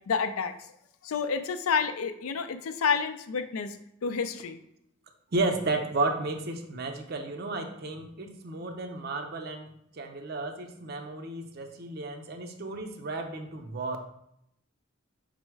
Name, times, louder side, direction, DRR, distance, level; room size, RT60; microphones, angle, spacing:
voice 1, 0.1-0.5 1.0-3.8 4.0-4.6, left 6 dB, 80° left, 9 dB, 0.4 m, -29 dB
voice 2, 5.3-9.7 9.9-14.0, right 2 dB, 45° right, 4 dB, 0.5 m, -33 dB
5.4 x 2.0 x 4.5 m, 0.76 s
head